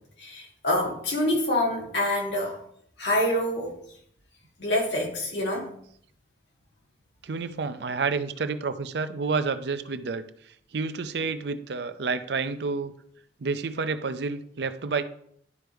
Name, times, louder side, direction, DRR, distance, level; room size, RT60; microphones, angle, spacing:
voice 1, 0.2-2.6 3.0-3.7 4.6-5.7, left 1 dB, 75° left, -2 dB, 2.2 m, -26 dB
voice 2, 7.2-10.2 10.7-12.9 13.4-15.0, right 4 dB, 65° right, 11 dB, 0.5 m, -29 dB
11.0 x 4.5 x 3.4 m, 0.67 s
head